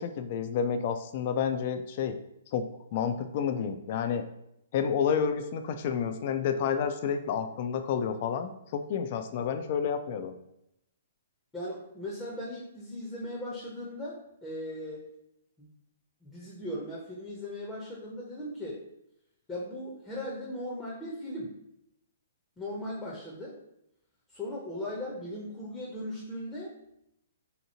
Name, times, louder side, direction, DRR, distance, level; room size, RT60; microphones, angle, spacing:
voice 1, 0.0-2.2 2.5-4.2 4.7-10.4, left 7 dB, 45° left, 8 dB, 0.3 m, -30 dB
voice 2, 11.5-15.1 15.6-15.7 16.2-18.8 19.5-21.6 22.6-23.6 24.3-26.7, left 1 dB, 10° left, -6 dB, 0.6 m, -38 dB
2.8 x 2.7 x 2.7 m, 0.80 s
hypercardioid pair, 130°, 0 cm